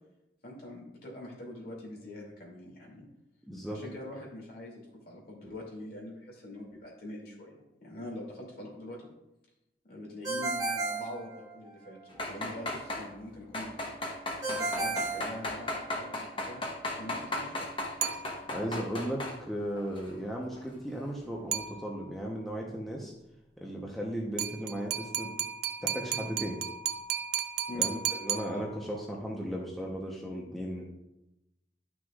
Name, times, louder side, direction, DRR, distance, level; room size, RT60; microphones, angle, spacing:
voice 1, 0.4-3.0 3.7-9.1 9.8-13.8 14.4-17.7 27.7-27.9, left 1 dB, 55° left, -3 dB, 2.6 m, -44 dB
voice 2, 3.5-3.8 18.5-23.1 23.6-25.5 25.8-26.6 27.7-30.9, equal, ahead, -3 dB, 0.9 m, -36 dB
Ringtone, 10.2-11.9 14.4-16.1, right 3 dB, 20° right, 1.3 m, -33 dB
sound 1, 12.1-13.1 13.5-19.4 19.8-20.1 20.5-20.6, left 2 dB, 30° left, 1.1 m, -36 dB
sound 2, 18.0-18.8 21.5-22.3 24.4-29.1, right 9 dB, 60° right, 0.5 m, -35 dB
11.5 x 6.2 x 2.4 m, 0.90 s
head